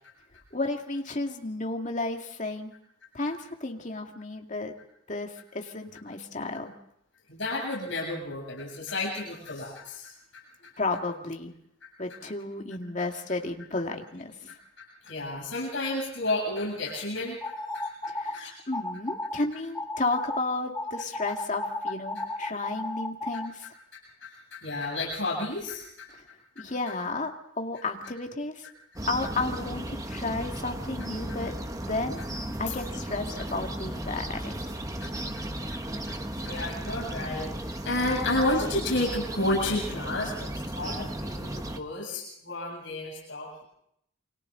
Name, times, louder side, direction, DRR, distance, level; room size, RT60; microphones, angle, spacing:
voice 1, 0.5-2.7 3.1-4.7 5.1-6.7 10.8-11.5 12.0-14.5 18.1-23.7 26.1-26.2 26.6-28.7 29.1-31.6 31.9-32.2 32.6-34.7, left 2 dB, 35° left, 3 dB, 2.1 m, -33 dB
voice 2, 7.3-10.7 14.8-17.9 18.3-18.5 24.2-26.1 35.0-35.1 35.3-35.4 35.7-35.8 36.1-43.6, left 2 dB, 65° left, -3 dB, 7.7 m, -31 dB
sound 1, 17.4-18.4 18.7-19.4 19.7-20.4 20.7-23.5, left 2 dB, 10° left, 0.8 m, -33 dB
sound 2, 29.0-41.8, right 1 dB, 15° right, 1.2 m, -35 dB
28.5 x 25.0 x 3.9 m, 0.74 s
head